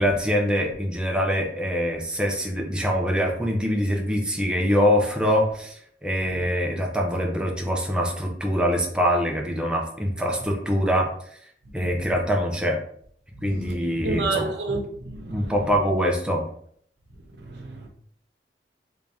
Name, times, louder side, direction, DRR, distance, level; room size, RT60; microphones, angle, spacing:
voice 1, 0.0-11.1 11.7-12.8 13.4-14.5 15.3-16.4, equal, 5° right, -1 dB, 0.5 m, -24 dB
voice 2, 11.7-12.1 13.4-15.5 17.4-17.9, right 3 dB, 75° right, 2 dB, 0.8 m, -31 dB
3.5 x 2.7 x 3.3 m, 0.62 s
head